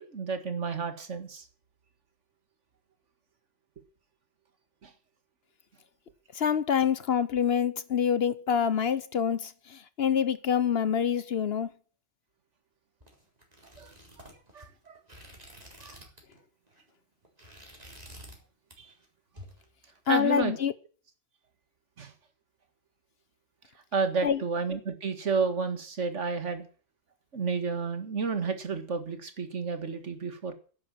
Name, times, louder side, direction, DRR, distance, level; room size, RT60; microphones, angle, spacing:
voice 1, 0.0-1.5 4.8-4.9 13.8-13.9 14.5-15.0 15.8-16.0 18.8-18.9 20.1-20.5 22.0-22.1 23.9-26.6 27.3-30.5, right 4 dB, 70° right, 2.0 m, -31 dB
voice 2, 6.3-11.7 20.1-20.7 24.2-24.4, left 8 dB, 55° left, 1.0 m, -26 dB
sound 1, 13.0-16.4 16.7-16.9 17.2-18.4 18.7-19.1 19.4-20.3, equal, 30° right, 4.0 m, -50 dB
10.5 x 10.5 x 7.5 m
omnidirectional pair, 1.3 m